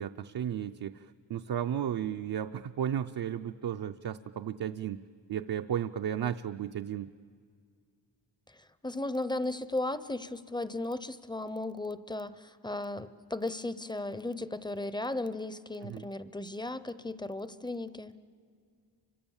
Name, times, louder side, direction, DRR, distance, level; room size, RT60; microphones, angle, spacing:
voice 1, 0.0-5.0 5.3-7.1 15.8-16.1, right 9 dB, 55° right, 6 dB, 0.6 m, -34 dB
voice 2, 8.8-18.1, left 2 dB, 10° left, 14 dB, 0.6 m, -36 dB
30.0 x 25.0 x 7.2 m, 2.1 s
wide cardioid pair, 155°, 45 cm